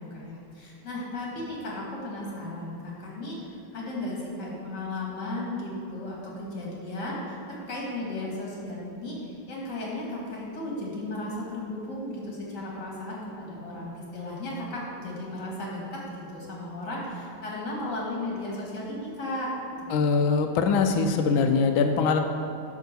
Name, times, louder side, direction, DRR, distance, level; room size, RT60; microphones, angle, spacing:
voice 1, 0.1-19.5 19.8-19.9, left 1 dB, 55° left, -4 dB, 2.6 m, -35 dB
voice 2, 19.9-22.2, left 5 dB, 80° left, 6 dB, 1.3 m, -22 dB
10.5 x 3.6 x 6.7 m, 2.5 s
omnidirectional pair, 2.2 m